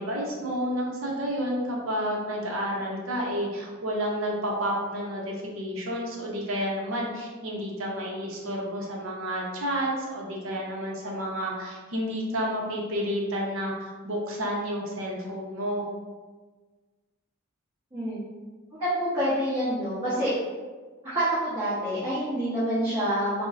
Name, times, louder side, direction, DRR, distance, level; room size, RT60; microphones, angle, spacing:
voice 1, 0.0-15.8, equal, 65° right, -2 dB, 0.7 m, -30 dB
voice 2, 18.8-20.3 21.0-23.5, equal, 25° right, -13 dB, 0.9 m, -27 dB
4.2 x 2.1 x 2.4 m, 1.4 s
head